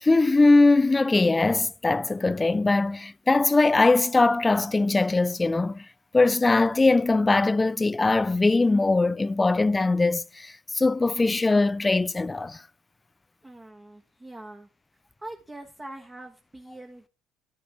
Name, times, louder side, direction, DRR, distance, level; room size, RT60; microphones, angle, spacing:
voice 1, 0.0-5.9 6.1-12.6, left 3 dB, 20° left, 0.4 m, -21 dB
voice 2, 13.4-14.7 15.2-17.1, right 1 dB, 20° right, 1.5 m, -43 dB
10.0 x 10.0 x 3.6 m
figure-of-eight pair, 55°, 0 cm